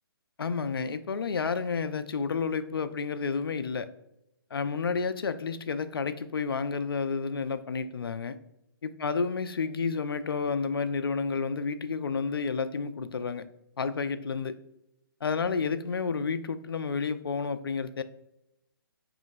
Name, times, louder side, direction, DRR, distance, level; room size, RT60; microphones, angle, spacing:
voice 1, 0.4-3.9 4.5-8.4 8.8-13.4 13.8-14.5 15.2-18.0, left 5 dB, 75° left, 0.4 m, -30 dB
5.0 x 3.0 x 2.4 m
figure-of-eight pair, 135°, 12 cm